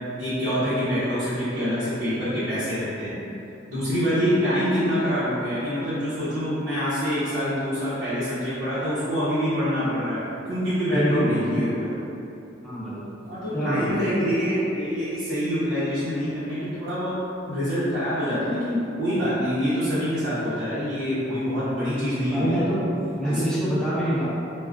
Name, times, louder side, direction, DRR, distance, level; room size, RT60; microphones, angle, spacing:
voice 1, 0.2-3.2 3.7-10.2 10.5-11.9 13.2-17.2 17.5-22.7 23.2-23.4, equal, 85° right, -15 dB, 0.9 m, -25 dB
voice 2, 10.9-11.7 12.6-13.0 13.5-14.0 21.2-21.5 22.3-22.8 23.1-24.3, equal, 5° left, -10 dB, 0.7 m, -25 dB
3.5 x 2.3 x 2.4 m, 2.8 s
head